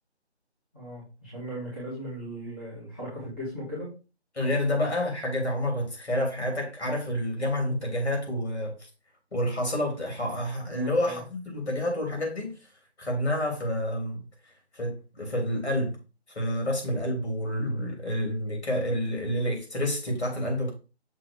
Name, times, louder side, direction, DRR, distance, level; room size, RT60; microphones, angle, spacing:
voice 1, 0.7-3.9 10.6-11.2, right 1 dB, 10° left, 1.5 m, -37 dB
voice 2, 4.3-8.7 9.3-12.5 13.0-14.2 14.7-16.0 16.3-20.7, left 1 dB, 70° left, 3.3 m, -29 dB
6.4 x 3.6 x 4.7 m
figure-of-eight pair, 170°, 34 cm